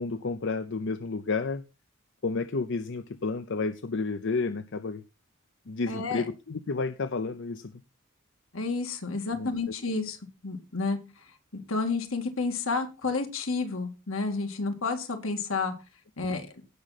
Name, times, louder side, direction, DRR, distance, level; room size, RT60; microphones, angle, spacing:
voice 1, 0.0-1.6 2.2-5.0 5.7-7.7 9.3-9.5 16.2-16.3, left 4 dB, 60° left, 0.6 m, -31 dB
voice 2, 5.8-6.2 8.5-10.2 10.4-11.2 11.7-15.7 16.2-16.5, left 3 dB, 75° left, 2.0 m, -30 dB
17.0 x 6.2 x 4.1 m
head